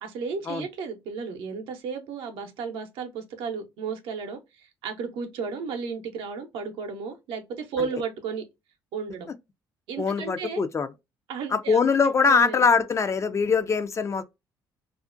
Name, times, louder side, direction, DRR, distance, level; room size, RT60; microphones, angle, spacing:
voice 1, 0.0-8.4 8.9-9.3 9.9-10.6 11.3-12.7, right 5 dB, 75° right, 0.7 m, -34 dB
voice 2, 10.0-10.9 11.5-14.2, left 5 dB, 30° left, 0.4 m, -22 dB
2.4 x 2.1 x 2.4 m
supercardioid pair, 65°, 9 cm